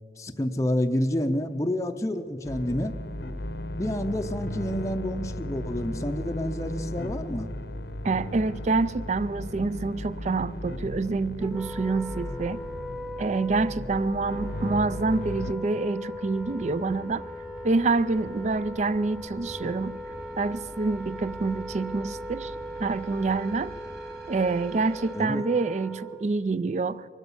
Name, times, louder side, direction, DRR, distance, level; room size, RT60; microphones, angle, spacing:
voice 1, 0.2-2.9 3.8-7.5 25.1-25.4, left 1 dB, 20° left, 5 dB, 0.5 m, -28 dB
sound 1, 2.4-15.5, left 1 dB, 70° left, 0.8 m, -36 dB
voice 2, 8.0-12.6 13.2-17.3 17.6-19.9 20.4-22.5 22.8-23.7 24.3-27.1, right 3 dB, 40° right, 18 dB, 0.4 m, -27 dB
Wind instrument woodwind instrument, 11.4-26.3, right 1 dB, 5° right, 1.0 m, -39 dB
sound 2, 16.1-25.1, equal, 60° right, 2.7 m, -46 dB
24.5 x 8.2 x 7.1 m, 2.4 s
head